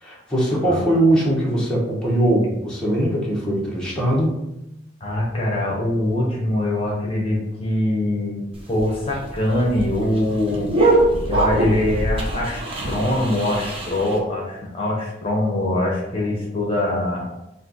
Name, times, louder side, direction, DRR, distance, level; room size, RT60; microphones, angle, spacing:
voice 1, 0.0-4.4, right 1 dB, 5° left, -6 dB, 1.2 m, -21 dB
voice 2, 5.0-10.7 11.2-17.3, left 1 dB, 30° left, -4 dB, 1.0 m, -23 dB
sound 1, 8.5-14.2, right 2 dB, 30° right, 0.8 m, -23 dB
4.3 x 2.5 x 3.9 m, 0.88 s
head